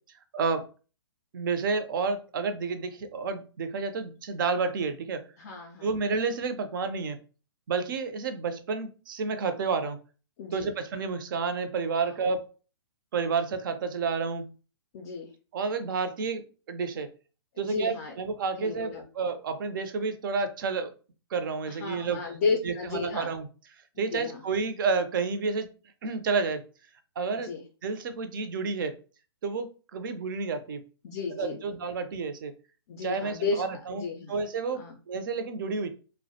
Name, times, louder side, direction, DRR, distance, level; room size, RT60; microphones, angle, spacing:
voice 1, 0.3-0.6 1.3-5.2 5.8-7.2 7.7-10.0 10.5-12.5 13.1-14.5 15.5-16.4 16.7-17.1 17.6-20.9 21.3-22.2 22.6-23.5 24.0-25.7 26.0-26.6 27.2-27.5 27.8-28.9 29.4-30.8 31.4-32.5 33.0-35.9, right 4 dB, 55° right, 9 dB, 0.4 m, -30 dB
voice 2, 5.4-5.9 10.4-10.7 12.0-12.2 14.9-15.3 17.6-18.1 18.6-19.0 21.7-23.3 24.1-24.4 27.4-27.6 31.0-31.6 32.9-34.4 34.7-35.0, left 4 dB, 40° left, 3 dB, 0.4 m, -33 dB
2.2 x 2.1 x 2.6 m, 0.36 s
hypercardioid pair, 140°, 13 cm